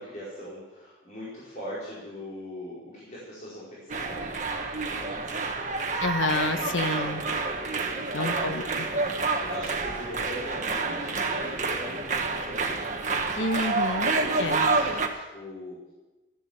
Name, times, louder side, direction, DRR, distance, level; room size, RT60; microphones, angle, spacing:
voice 1, 0.0-5.8 6.5-6.8 7.8-12.9 13.8-15.8, equal, 40° left, -9 dB, 4.7 m, -40 dB
sound 1, 3.9-15.1, right 3 dB, 40° right, 1.5 m, -28 dB
voice 2, 6.0-7.2 8.1-8.6 13.4-14.1 14.4-14.7, left 2 dB, 85° left, 8 dB, 1.2 m, -29 dB
14.0 x 11.0 x 7.2 m, 1.1 s
head